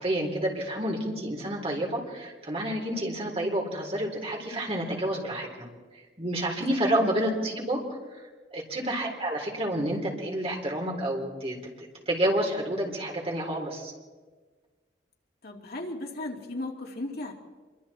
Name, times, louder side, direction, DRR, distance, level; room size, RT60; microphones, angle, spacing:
voice 1, 0.0-5.7 6.2-7.8 8.5-13.9, right 1 dB, 35° right, 0 dB, 4.0 m, -29 dB
voice 2, 15.4-17.3, left 2 dB, 60° left, 0 dB, 2.8 m, -36 dB
26.5 x 23.5 x 4.4 m, 1.4 s
head